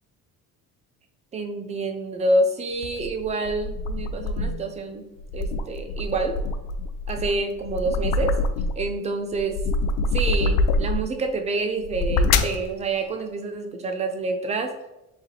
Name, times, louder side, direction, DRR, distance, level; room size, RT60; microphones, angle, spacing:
voice 1, 1.3-5.0 5.3-6.4 7.1-8.4 8.8-9.6 10.1-14.8, right 2 dB, 20° right, 6 dB, 0.4 m, -27 dB
sound 1, 2.8-4.7 5.2-8.9 9.3-11.2 11.8-12.6, left 3 dB, 80° left, 0.5 m, -25 dB
4.5 x 3.4 x 2.9 m, 0.95 s
cardioid pair, 160°, 32 cm